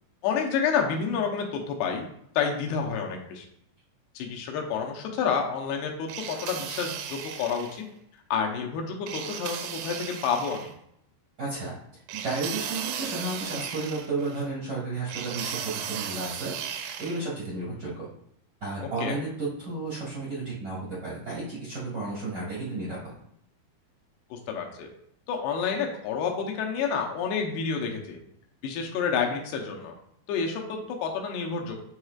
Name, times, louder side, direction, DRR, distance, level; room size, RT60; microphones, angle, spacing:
voice 1, 0.2-2.1 2.4-3.5 4.2-7.9 8.3-10.7 18.8-19.2 24.3-24.9 25.3-28.2 28.6-29.9 30.3-31.7, left 6 dB, 75° left, 1 dB, 2.7 m, -29 dB
sound 1, 6.1-7.8 9.1-10.7 12.1-14.4 15.1-17.2, right 8 dB, 80° right, 2.6 m, -36 dB
voice 2, 11.4-11.8 12.1-16.5 17.0-18.1 18.6-23.1, right 3 dB, 65° right, -8 dB, 1.0 m, -33 dB
8.8 x 4.8 x 2.4 m, 0.72 s
omnidirectional pair, 5.1 m